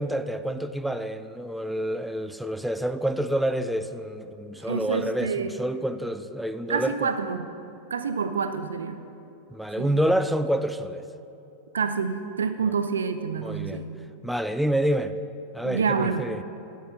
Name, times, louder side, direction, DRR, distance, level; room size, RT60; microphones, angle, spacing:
voice 1, 0.0-7.1 9.5-11.0 13.4-13.8 14.2-15.2 15.5-16.4, right 1 dB, ahead, 0.4 m, -28 dB
voice 2, 4.7-5.5 6.7-7.5 7.9-9.0 9.8-9.9 11.7-13.9 15.6-16.3, right 5 dB, 70° right, 0.4 m, -27 dB
11.5 x 4.7 x 6.4 m
figure-of-eight pair, 90°, 0 cm